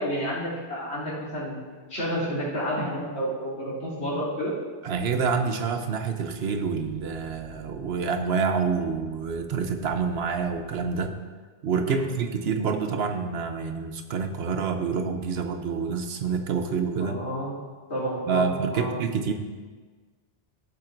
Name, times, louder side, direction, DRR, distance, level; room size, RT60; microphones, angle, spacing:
voice 1, 0.0-1.6 1.9-4.6 11.9-12.1 17.0-17.5 17.9-19.0, equal, 80° left, -8 dB, 2.9 m, -30 dB
voice 2, 4.8-11.1 11.6-17.2 18.3-19.3, right 5 dB, 75° right, 6 dB, 1.0 m, -27 dB
15.0 x 7.4 x 2.6 m, 1.4 s
omnidirectional pair, 1.1 m